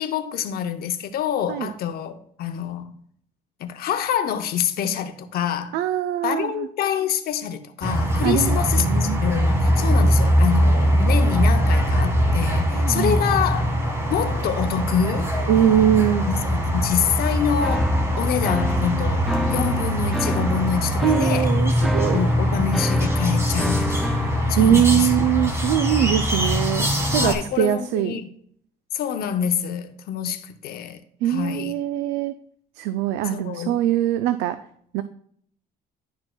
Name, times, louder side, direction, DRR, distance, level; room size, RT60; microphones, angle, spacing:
voice 1, 0.0-3.0 3.6-5.8 6.2-13.7 14.1-15.3 16.3-21.5 22.1-24.2 24.5-25.0 27.1-28.3 28.9-31.0 31.2-31.8 33.2-33.8, left 8 dB, 65° left, 0.7 m, -26 dB
voice 2, 5.7-6.7 8.2-9.2 12.7-13.2 15.5-16.3 21.0-22.2 24.5-28.2 31.2-32.3 32.8-34.6 34.9-35.0, right 11 dB, 85° right, 0.4 m, -22 dB
sound 1, 7.8-27.3, equal, 15° right, 1.6 m, -22 dB
sound 2, 17.6-24.4, left 1 dB, ahead, 0.3 m, -30 dB
11.0 x 4.4 x 2.2 m
cardioid pair, 110°, 17 cm